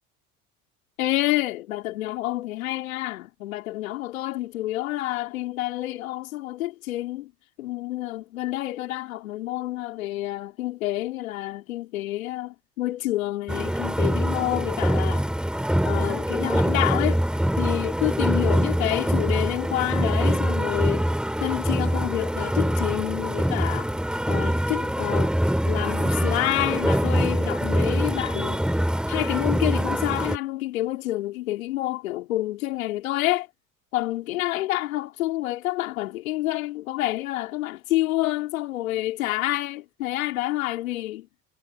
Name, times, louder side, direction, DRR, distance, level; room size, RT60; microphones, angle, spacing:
voice 1, 1.0-7.3 7.6-15.3 15.8-17.2 17.6-21.0 21.4-23.9 24.3-25.3 25.6-28.6 29.1-33.5 33.9-41.3, left 16 dB, 80° left, 3.4 m, -28 dB
sound 1, 13.5-30.4, equal, ahead, 2.3 m, -24 dB
hypercardioid pair, 65°, 41 cm